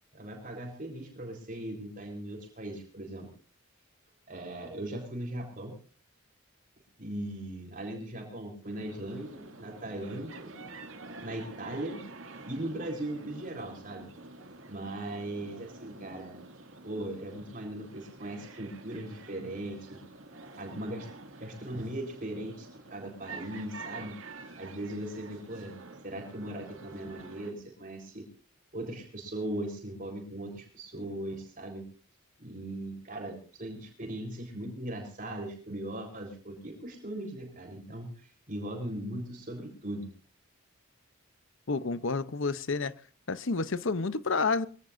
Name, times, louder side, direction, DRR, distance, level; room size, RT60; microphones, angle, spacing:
voice 1, 0.1-3.3 4.3-5.8 7.0-10.5 11.2-12.0 12.4-14.1 14.7-16.4 16.8-20.0 20.6-21.1 21.4-24.2 24.6-25.8 26.0-28.3 28.7-31.9 32.4-40.1, right 1 dB, 40° right, 4.0 m, -39 dB
sound 1, 8.6-27.5, right 3 dB, 65° right, 2.3 m, -48 dB
voice 2, 41.7-42.9 43.3-44.7, left 4 dB, 60° left, 0.7 m, -29 dB
23.5 x 17.0 x 2.6 m
head